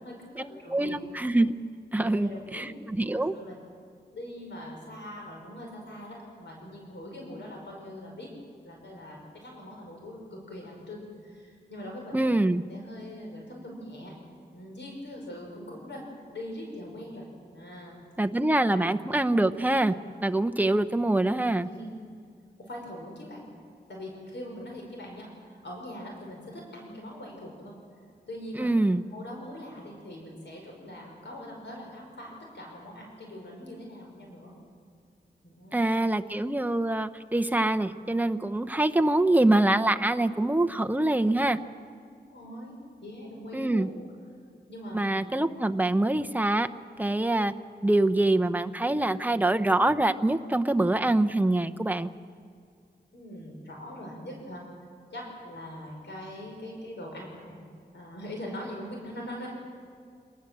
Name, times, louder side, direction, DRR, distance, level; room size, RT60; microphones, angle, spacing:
voice 1, 0.0-1.0 2.0-2.7 3.1-3.6 4.1-8.3 8.6-12.3 12.7-14.1 14.5-16.0 16.3-17.3 17.5-18.0 18.7-18.9 21.6-21.9 22.6-23.5 23.9-27.8 28.3-28.7 29.1-34.5 35.4-35.9 42.2-44.1 44.7-45.2 53.1-54.6 55.1-57.6 57.9-59.5, left 1 dB, 80° left, -1 dB, 5.2 m, -42 dB
voice 2, 0.7-1.6 1.9-3.3 12.1-12.6 18.2-19.9 20.2-21.7 28.6-29.0 35.7-41.6 43.5-43.9 44.9-46.7 47.0-47.5 47.8-52.1, right 2 dB, 10° right, 7 dB, 0.7 m, -25 dB
26.5 x 20.0 x 7.5 m, 2.2 s
wide cardioid pair, 115°, 18 cm